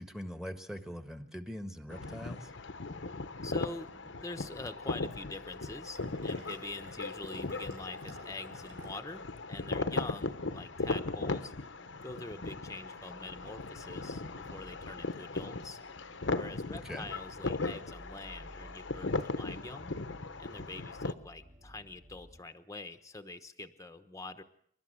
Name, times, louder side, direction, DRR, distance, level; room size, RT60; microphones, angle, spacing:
voice 1, 0.0-2.5 16.7-17.1, equal, 5° right, 8 dB, 1.5 m, -42 dB
sound 1, 1.9-21.1, left 3 dB, 65° left, 1.0 m, -38 dB
sound 2, 2.5-22.4, equal, 25° right, 2.6 m, -58 dB
voice 2, 3.4-11.5 12.0-15.8 16.4-19.9 20.4-24.4, left 2 dB, 15° left, 9 dB, 1.1 m, -45 dB
Fill (with liquid), 5.2-9.2, right 2 dB, 85° right, 5.9 m, -56 dB
28.0 x 12.5 x 7.9 m, 0.67 s
head